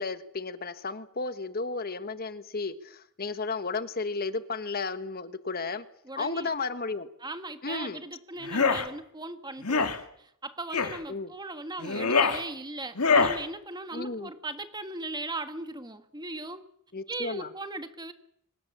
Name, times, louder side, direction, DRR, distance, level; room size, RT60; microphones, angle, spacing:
voice 1, 0.0-5.8 6.2-7.1 7.6-8.0 11.1-11.3 13.9-14.3 16.9-17.5, left 3 dB, 45° left, 1.3 m, -33 dB
voice 2, 6.0-6.5 7.2-9.9 10.2-16.6 17.1-18.1, right 2 dB, 20° right, 1.7 m, -38 dB
sound 1, 8.4-8.9 9.6-10.0 10.7-11.0 11.8-12.4 13.0-13.4, left 4 dB, 75° left, 2.3 m, -24 dB
25.0 x 21.0 x 7.4 m
head